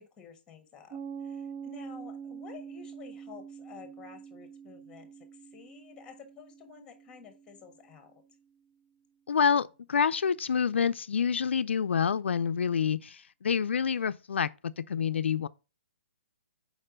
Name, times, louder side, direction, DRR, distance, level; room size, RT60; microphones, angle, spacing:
voice 1, 0.0-8.2, left 6 dB, 15° left, 1.4 m, -51 dB
Piano, 0.9-8.1, right 7 dB, 35° right, 0.8 m, -45 dB
voice 2, 9.3-15.5, left 7 dB, 85° left, 0.3 m, -27 dB
4.7 x 4.4 x 5.0 m
hypercardioid pair, 150°, 6 cm